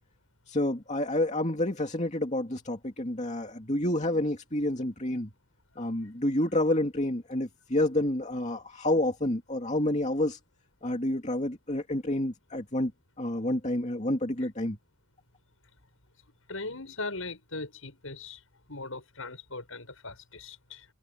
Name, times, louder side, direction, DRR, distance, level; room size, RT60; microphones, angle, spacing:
voice 1, 0.5-5.3 5.8-10.4 10.8-12.9 13.2-14.8, left 1 dB, 35° left, 2.5 m, -29 dB
voice 2, 16.5-18.4 18.7-20.9, left 3 dB, 75° left, 7.7 m, -39 dB
head